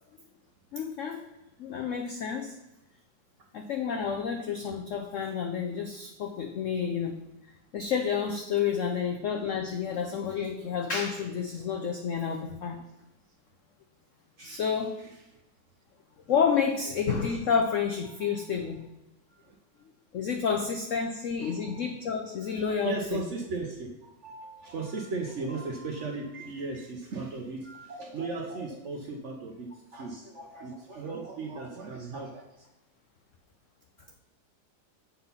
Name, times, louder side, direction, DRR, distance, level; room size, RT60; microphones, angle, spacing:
voice 1, 0.7-1.2 1.6-2.5 3.5-7.2 7.7-12.9 14.4-15.0 16.3-18.9 20.1-23.2, left 6 dB, 85° left, 4 dB, 0.6 m, -30 dB
voice 2, 18.0-18.4 19.4-19.6 21.4-21.8 22.1-22.6 22.8-32.7, right 3 dB, 55° right, 1 dB, 0.8 m, -37 dB
7.0 x 3.9 x 5.5 m, 0.94 s
omnidirectional pair, 2.0 m